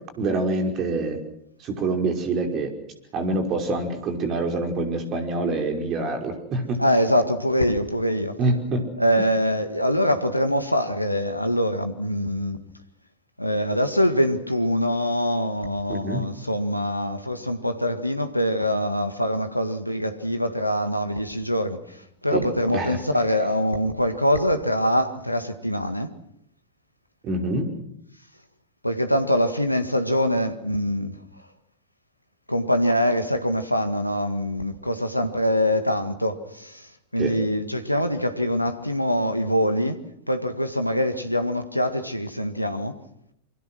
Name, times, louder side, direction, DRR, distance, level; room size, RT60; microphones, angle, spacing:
voice 1, 0.2-1.2 1.6-2.7 3.1-6.8 8.4-8.9 15.9-16.3 22.3-22.4 22.7-23.0 27.2-27.7 37.2-37.3, right 2 dB, 35° right, 5.2 m, -25 dB
voice 2, 6.8-8.4 9.0-12.6 13.4-26.1 28.8-31.2 32.5-40.0 40.3-43.0, equal, 90° left, 1.8 m, -24 dB
27.0 x 24.0 x 6.2 m
figure-of-eight pair, 90°, 0 cm